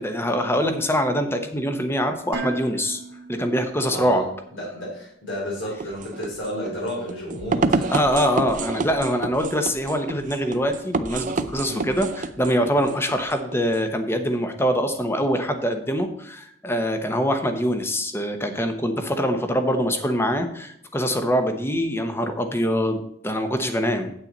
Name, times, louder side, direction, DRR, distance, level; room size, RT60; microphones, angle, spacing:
voice 1, 0.0-3.0 3.3-4.2 7.9-24.1, equal, 15° left, 7 dB, 1.0 m, -24 dB
Dishes pots and pans, 2.3-4.4, right 2 dB, 70° right, 1.6 m, -36 dB
voice 2, 3.9-7.9 11.6-12.0, equal, 75° left, -4 dB, 3.7 m, -32 dB
sound 1, 5.7-13.9, right 3 dB, 40° right, 0.5 m, -29 dB
9.0 x 8.6 x 4.1 m, 0.72 s
head